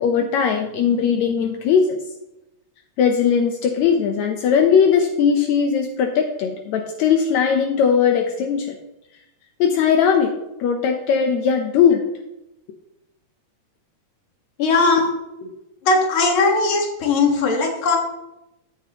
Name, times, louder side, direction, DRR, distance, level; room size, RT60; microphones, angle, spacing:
voice 1, 0.0-2.0 3.0-8.8 9.6-10.3 10.6-12.0, left 7 dB, 75° left, 4 dB, 2.0 m, -19 dB
voice 2, 14.6-15.1 15.8-18.0, left 3 dB, 50° left, 2 dB, 2.2 m, -18 dB
13.5 x 8.1 x 2.9 m, 0.91 s
omnidirectional pair, 3.3 m